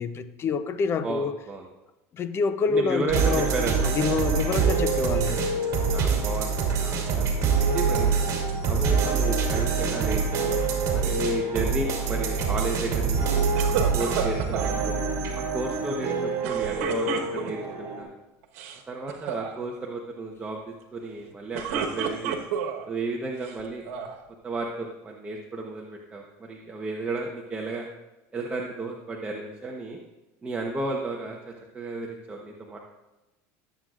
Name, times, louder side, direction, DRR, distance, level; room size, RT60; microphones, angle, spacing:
voice 1, 0.0-1.3 2.1-3.5 3.8-5.6, left 5 dB, 35° left, 11 dB, 0.6 m, -27 dB
voice 2, 1.0-1.6 2.7-3.9 5.9-8.1 8.7-15.0 15.5-18.2 18.9-22.4 22.8-23.8 24.4-27.9 28.3-30.0 30.4-32.8, right 3 dB, 20° right, -1 dB, 1.0 m, -33 dB
sound 1, 3.1-18.0, right 5 dB, 45° right, 2.6 m, -25 dB
sound 2, 13.6-14.7 16.4-17.7 18.4-18.8 19.1-19.5 21.3-22.8 23.4-24.2, right 7 dB, 85° right, 1.2 m, -31 dB
19.5 x 7.8 x 2.5 m, 1.0 s
supercardioid pair, 130°, 7 cm